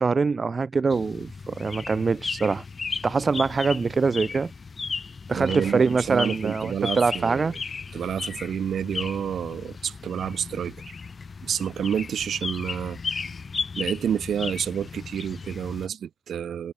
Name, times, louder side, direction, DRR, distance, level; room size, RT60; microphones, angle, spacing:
voice 1, 0.0-2.6 3.0-4.5 5.3-7.5, right 4 dB, 35° right, 1.4 m, -24 dB
sound 1, 0.9-15.9, left 5 dB, 35° left, 1.9 m, -35 dB
voice 2, 5.3-7.6 7.9-10.8 11.4-13.0 13.7-16.7, right 8 dB, 60° right, 3.4 m, -29 dB
cardioid pair, 90°, 0 cm